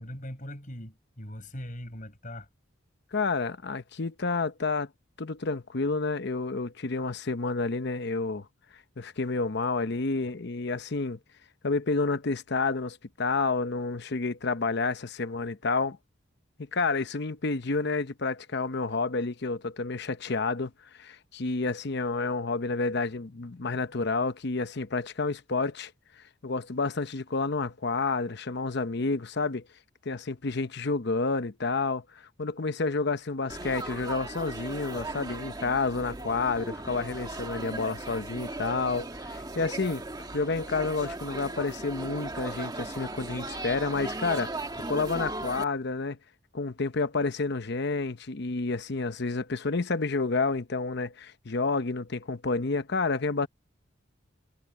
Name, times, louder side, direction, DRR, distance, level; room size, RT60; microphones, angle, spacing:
voice 1, 0.0-2.5, left 1 dB, 40° left, 5.9 m, -40 dB
voice 2, 3.1-4.9 5.2-8.5 9.0-11.2 11.6-16.0 16.6-20.7 21.0-25.9 26.2-29.7 30.0-40.0 40.3-44.5 44.9-46.2 46.5-53.5, left 3 dB, 60° left, 0.9 m, -29 dB
Laughter / Chatter / Crowd, 33.5-45.6, right 2 dB, 20° right, 1.7 m, -37 dB
head